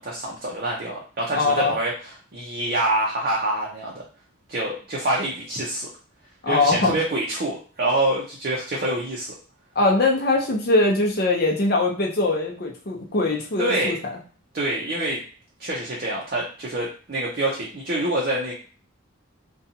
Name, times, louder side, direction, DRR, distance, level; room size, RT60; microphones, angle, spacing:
voice 1, 0.0-4.0 4.5-5.9 6.5-9.3 13.6-14.0 14.5-15.2 15.6-18.5, right 1 dB, 45° right, -4 dB, 0.6 m, -26 dB
voice 2, 1.3-1.7 6.4-7.0 9.8-13.9, left 2 dB, 50° left, 0 dB, 0.7 m, -21 dB
2.6 x 2.3 x 2.7 m, 0.39 s
head